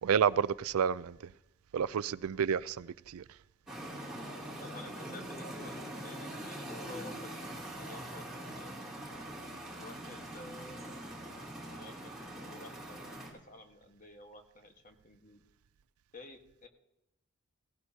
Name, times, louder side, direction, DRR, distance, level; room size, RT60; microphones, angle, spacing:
voice 1, 0.0-1.2 1.7-3.2, right 7 dB, 85° right, 0.4 m, -30 dB
sound 1, 3.7-13.3, right 1 dB, ahead, 2.8 m, -43 dB
voice 2, 4.6-8.9 9.7-11.0 11.6-13.1 13.5-15.4 16.1-16.7, left 2 dB, 40° left, 1.4 m, -51 dB
17.0 x 16.0 x 2.8 m
head